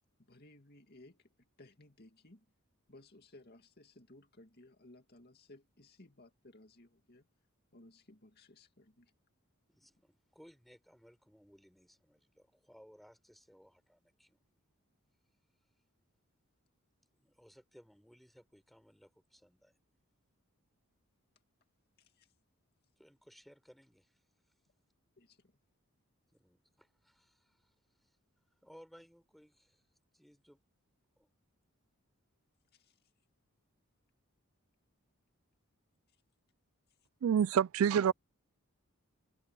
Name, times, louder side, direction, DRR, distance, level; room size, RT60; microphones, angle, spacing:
voice 1, 0.2-2.5 2.9-7.3 7.7-9.1 22.0-22.3 25.2-25.6 32.7-33.1 36.1-36.2 36.9-37.0, left 2 dB, 45° left, 2.3 m, -60 dB
voice 2, 9.7-14.4 17.2-19.8 23.0-24.2 26.3-28.2 28.6-29.9 30.1-30.6 31.2-31.3, equal, ahead, 5.2 m, -61 dB
voice 3, 37.2-38.1, right 8 dB, 70° right, 0.3 m, -27 dB
head